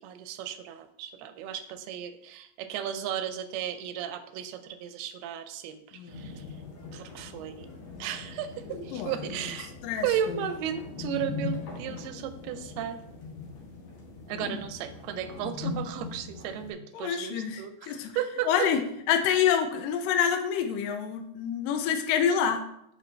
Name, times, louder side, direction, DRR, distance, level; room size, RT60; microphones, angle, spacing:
voice 1, 0.0-5.8 6.1-6.4 6.9-7.7 8.0-8.5 8.8-9.7 10.0-13.0 14.3-18.5, right 9 dB, 90° right, 9 dB, 2.6 m, -34 dB
sound 1, 6.1-16.7, left 4 dB, 55° left, 2.7 m, -40 dB
voice 2, 9.8-10.4 14.3-14.5 16.9-18.2 18.5-18.8 19.1-22.6, left 8 dB, 80° left, 6 dB, 2.1 m, -27 dB
7.6 x 6.1 x 3.3 m, 0.77 s
omnidirectional pair, 4.4 m